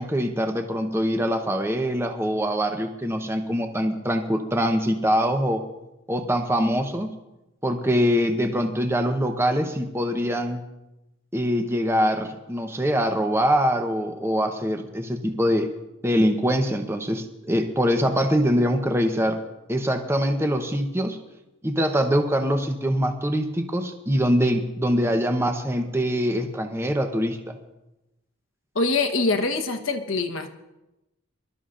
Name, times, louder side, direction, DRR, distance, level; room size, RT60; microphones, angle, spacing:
voice 1, 0.0-5.6 6.1-7.1 7.6-10.6 11.3-15.7 16.0-19.4 19.7-21.2 21.6-27.6, equal, 10° right, 5 dB, 0.9 m, -23 dB
voice 2, 28.7-30.5, left 3 dB, 70° left, 6 dB, 1.2 m, -24 dB
25.5 x 12.5 x 2.6 m, 0.97 s
head